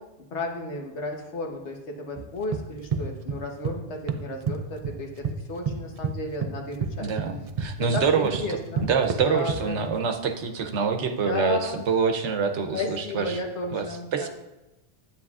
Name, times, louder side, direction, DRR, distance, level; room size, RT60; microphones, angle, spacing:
voice 1, 0.0-7.1 7.8-8.9 9.2-9.9 11.1-11.8 12.7-14.3, left 2 dB, 80° left, 2 dB, 1.4 m, -33 dB
sound 1, 2.2-3.8 4.1-5.4 5.7-10.0, right 5 dB, 50° right, 0.5 m, -30 dB
voice 2, 7.0-13.4 13.7-13.8 14.1-14.3, right 5 dB, 90° right, 5 dB, 1.1 m, -26 dB
9.9 x 9.0 x 2.4 m, 0.98 s
omnidirectional pair, 1.2 m